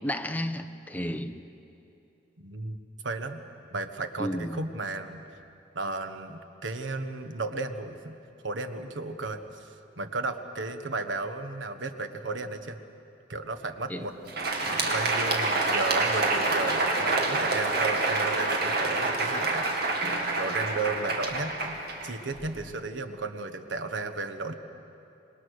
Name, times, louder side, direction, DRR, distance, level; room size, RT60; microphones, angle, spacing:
voice 1, 0.0-1.4 4.2-4.6 13.9-14.0 14.7-14.9, equal, 10° left, 7 dB, 0.9 m, -33 dB
voice 2, 2.4-3.4 3.7-5.4 5.7-8.2 8.4-12.8 13.3-14.3 14.9-20.1 20.3-21.8 22.0-24.5, right 3 dB, 80° right, 8 dB, 1.4 m, -34 dB
Crowd, 14.1-22.6, right 2 dB, 60° right, 2.4 m, -27 dB
26.5 x 20.5 x 6.5 m, 2.7 s
head